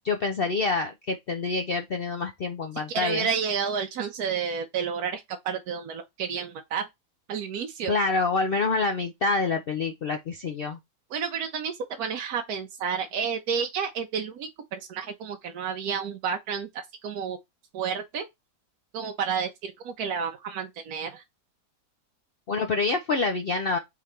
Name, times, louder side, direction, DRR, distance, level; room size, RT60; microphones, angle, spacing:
voice 1, 0.0-3.3 7.9-10.8 22.5-23.8, left 3 dB, 75° left, 0.5 m, -27 dB
voice 2, 2.9-6.9 7.3-7.9 11.1-16.7 17.0-17.4 17.7-18.2 18.9-21.2, right 6 dB, 70° right, 1.1 m, -30 dB
3.8 x 3.3 x 4.2 m
omnidirectional pair, 1.8 m